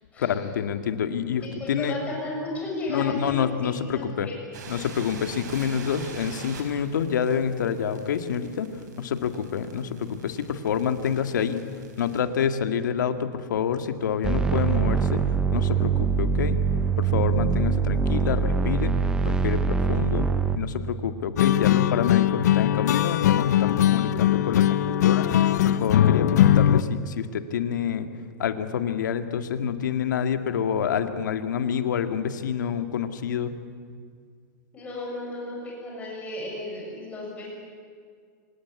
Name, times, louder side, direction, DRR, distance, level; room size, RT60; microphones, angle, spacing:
voice 1, 0.2-2.0 2.9-4.3 4.7-8.7 9.0-11.7 12.0-15.2 15.5-16.6 17.0-18.9 19.3-20.3 20.6-25.3 25.6-28.1 28.4-33.5, left 8 dB, 90° left, 8 dB, 2.0 m, -27 dB
voice 2, 1.4-3.4 3.9-4.9 6.5-6.6 34.7-37.5, left 2 dB, 15° left, -3 dB, 7.0 m, -34 dB
sound 1, 4.5-12.2, right 4 dB, 70° right, 5.1 m, -45 dB
sound 2, 14.2-20.6, right 6 dB, 10° right, 0.6 m, -23 dB
sound 3, 21.4-26.8, left 11 dB, 65° left, 0.9 m, -20 dB
26.0 x 18.0 x 9.7 m, 2.1 s
supercardioid pair, 170°, 10 cm